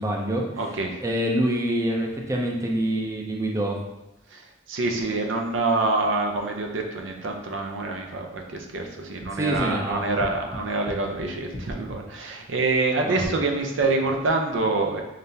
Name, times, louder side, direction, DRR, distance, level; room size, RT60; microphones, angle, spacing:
voice 1, 0.0-0.5 1.0-3.8 9.3-10.3 13.1-13.3, right 1 dB, 15° right, 0 dB, 0.4 m, -26 dB
voice 2, 0.6-1.0 4.3-15.0, right 3 dB, 85° right, 2 dB, 0.6 m, -26 dB
sound 1, 9.2-12.0, left 1 dB, 35° left, 0.7 m, -37 dB
4.0 x 3.2 x 2.7 m, 0.93 s
head